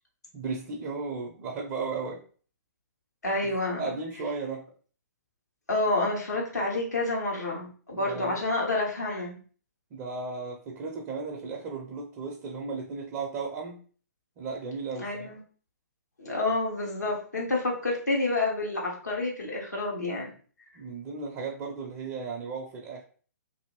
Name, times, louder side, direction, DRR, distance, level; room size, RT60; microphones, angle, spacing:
voice 1, 0.3-2.2 3.8-4.7 7.9-8.4 9.9-13.8 14.4-15.3 20.7-23.0, right 4 dB, 30° right, -1 dB, 0.5 m, -35 dB
voice 2, 3.2-4.0 5.7-9.4 15.0-15.4 16.2-20.3, left 2 dB, 80° left, -3 dB, 1.1 m, -29 dB
2.7 x 2.6 x 2.9 m, 0.42 s
figure-of-eight pair, 120°, 9 cm